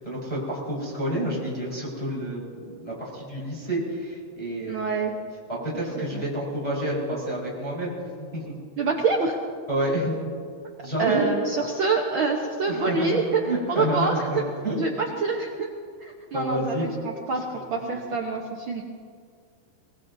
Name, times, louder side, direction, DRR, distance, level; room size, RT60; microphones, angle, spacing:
voice 1, 0.0-5.0 5.5-7.9 8.2-8.5 9.7-10.2 10.8-11.3 12.7-15.1 16.3-16.9 17.5-17.9, right 1 dB, 10° left, -6 dB, 4.5 m, -29 dB
voice 2, 4.7-5.1 6.1-6.2 8.8-9.3 11.0-13.4 13.7-14.4 14.8-15.7 16.0-17.4 17.7-18.8, right 4 dB, 80° right, -1 dB, 1.1 m, -26 dB
23.0 x 20.5 x 2.7 m, 2.1 s
omnidirectional pair, 3.9 m